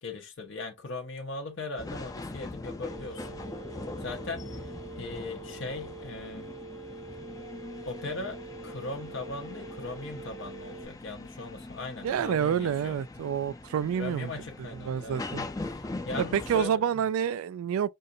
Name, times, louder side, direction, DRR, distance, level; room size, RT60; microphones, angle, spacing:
voice 1, 0.0-3.4 4.0-4.6 5.0-6.5 7.9-8.4 8.6-13.0 14.0-15.2 15.7-17.0, left 3 dB, 60° left, 0.6 m, -39 dB
sound 1, 1.8-16.7, left 2 dB, 15° left, 0.4 m, -41 dB
Telephone, 2.9-10.8, right 4 dB, 25° right, 0.6 m, -45 dB
voice 2, 12.0-14.3 14.7-15.5 16.3-17.9, right 8 dB, 90° right, 0.3 m, -28 dB
5.3 x 2.5 x 2.6 m
head